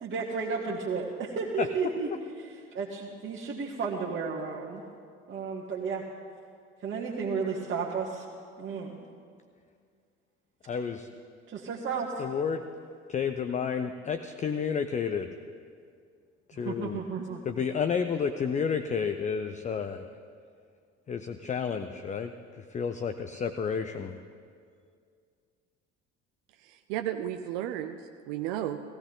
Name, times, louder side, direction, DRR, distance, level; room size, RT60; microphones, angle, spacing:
voice 1, 0.0-2.1 2.4-4.8 5.3-6.1 6.8-8.2 8.6-9.0 11.5-12.3 16.5-17.4, right 5 dB, 35° right, -4 dB, 1.5 m, -33 dB
voice 2, 10.6-11.1 12.2-12.6 13.1-15.3 16.5-17.0 17.4-20.1 21.1-24.2, left 6 dB, 20° left, 9 dB, 0.5 m, -31 dB
voice 3, 26.5-28.8, right 12 dB, 55° right, 7 dB, 0.6 m, -34 dB
16.5 x 15.5 x 3.9 m, 2.2 s
figure-of-eight pair, 60°, 36 cm